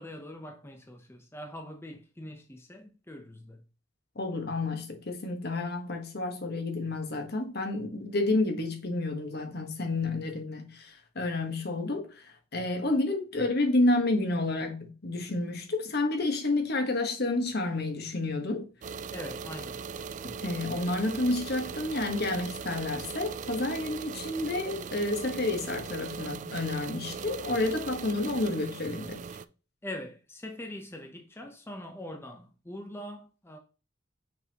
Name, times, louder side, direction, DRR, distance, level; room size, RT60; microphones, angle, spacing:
voice 1, 0.0-3.6 19.1-19.8 29.8-33.6, left 1 dB, 15° left, 0.7 m, -42 dB
voice 2, 4.1-18.7 20.2-29.2, left 2 dB, 55° left, 1.3 m, -30 dB
sound 1, 18.8-29.5, right 6 dB, 40° right, 0.3 m, -39 dB
6.0 x 5.3 x 2.9 m
head